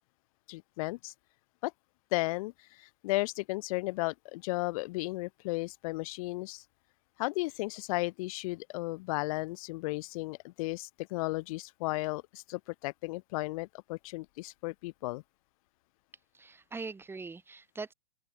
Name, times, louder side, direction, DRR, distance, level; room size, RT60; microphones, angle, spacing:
voice 1, 0.5-1.1 1.6-1.7 2.1-6.6 7.2-15.2, left 22 dB, 35° left, 1.2 m, -34 dB
voice 2, 16.3-17.9, right 4 dB, 10° right, 5.5 m, -42 dB
open air
hypercardioid pair, 135°, 30 cm